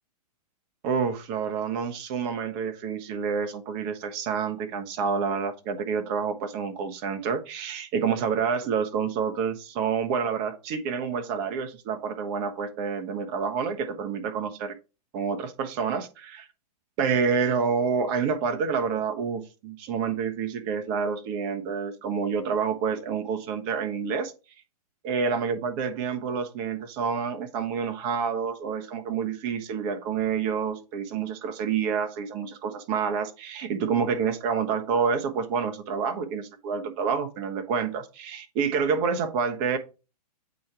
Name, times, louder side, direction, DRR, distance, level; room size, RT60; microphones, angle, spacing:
voice 1, 0.8-14.7 15.1-16.5 17.0-24.3 25.0-39.8, right 6 dB, 40° right, 1.2 m, -28 dB
8.1 x 3.0 x 4.7 m
hypercardioid pair, 125°, 20 cm